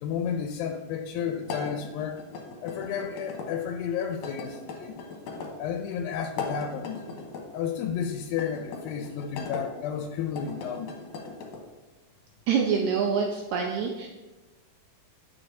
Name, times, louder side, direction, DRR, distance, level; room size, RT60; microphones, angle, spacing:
voice 1, 0.0-2.2 2.6-4.9 5.6-7.0 7.5-10.9, left 7 dB, 90° left, 4 dB, 2.3 m, -32 dB
sound 1, 1.4-3.5 4.2-5.5 6.2-7.5 8.3-9.6 10.2-11.6, left 4 dB, 70° left, 2.3 m, -38 dB
voice 2, 12.5-14.1, right 6 dB, 90° right, 1 dB, 1.6 m, -26 dB
8.7 x 6.8 x 2.7 m, 1.2 s
omnidirectional pair, 4.1 m